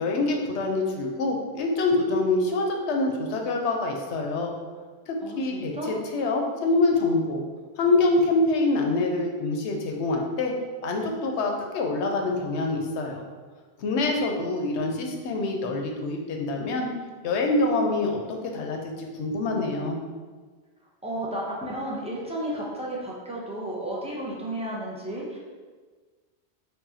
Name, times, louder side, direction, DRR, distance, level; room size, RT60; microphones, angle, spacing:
voice 1, 0.0-4.5 5.1-7.4 7.8-10.5 10.8-13.2 13.8-16.9 17.2-18.2 18.5-20.0, left 2 dB, 90° left, 1 dB, 0.9 m, -25 dB
voice 2, 5.2-5.9 21.0-25.4, right 1 dB, 10° right, -5 dB, 0.4 m, -33 dB
4.8 x 2.5 x 2.6 m, 1.4 s
omnidirectional pair, 1.1 m